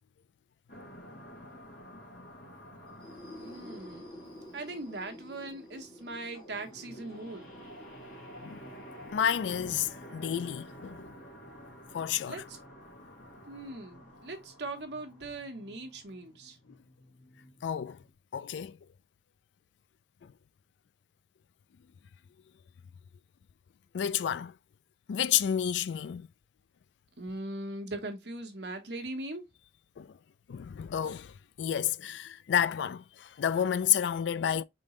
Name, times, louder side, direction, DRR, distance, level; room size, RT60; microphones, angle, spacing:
sound 1, 0.7-18.1, equal, 55° left, 2.0 m, -50 dB
sound 2, 2.9-10.5, left 1 dB, 30° left, 2.3 m, -51 dB
voice 1, 3.4-4.2 4.5-7.5 12.3-12.6 13.5-16.6 27.2-29.5, right 2 dB, 65° right, 1.1 m, -40 dB
voice 2, 9.0-11.1 11.9-12.4 17.6-18.0 18.3-18.8 23.9-24.5 25.1-26.3 30.0-30.1 30.5-34.6, left 9 dB, 75° left, 0.3 m, -30 dB
3.8 x 3.7 x 3.1 m
head